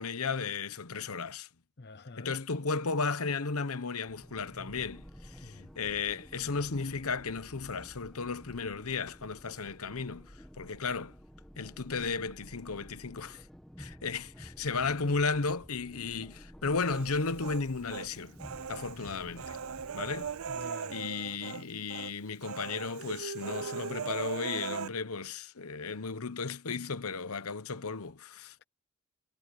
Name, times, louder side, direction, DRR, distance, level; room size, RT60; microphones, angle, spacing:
voice 1, 0.0-1.5 2.2-11.1 11.6-13.4 13.8-18.4 18.7-19.6 19.9-20.3 20.9-28.5, left 4 dB, 75° left, 1.0 m, -34 dB
voice 2, 1.8-2.3 5.4-5.7 18.9-19.2 20.5-20.9, left 3 dB, 50° left, 0.7 m, -48 dB
sound 1, 4.1-20.7, equal, ahead, 1.2 m, -52 dB
Human voice, 16.9-18.1 18.4-21.6 21.9-22.1 22.4-24.9, right 6 dB, 70° right, 0.5 m, -39 dB
head